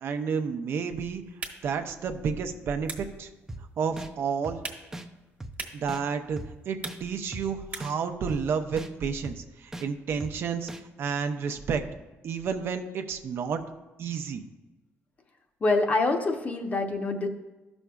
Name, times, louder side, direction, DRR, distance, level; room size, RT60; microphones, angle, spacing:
voice 1, 0.0-1.2 1.6-3.3 3.8-4.6 5.7-6.4 6.7-10.7 11.0-11.8 12.2-13.6 14.0-14.4, right 6 dB, 60° right, 7 dB, 0.6 m, -30 dB
sound 1, 1.2-8.1, right 4 dB, 35° right, 1.1 m, -44 dB
sound 2, 3.5-3.6 4.0-4.1 4.4-4.6 4.9-5.1 5.4-5.5 5.9-6.0 6.4-6.5 6.8-7.0 7.3-7.5 7.8-7.9 8.3-8.4 8.8-8.9 9.2-9.4 9.7-9.9 10.2-10.3 10.7-10.8, right 1 dB, 10° right, 0.5 m, -38 dB
voice 2, 15.6-17.3, left 3 dB, 35° left, 4 dB, 0.9 m, -25 dB
13.5 x 6.1 x 2.3 m, 1.1 s
cardioid pair, 120°, 5 cm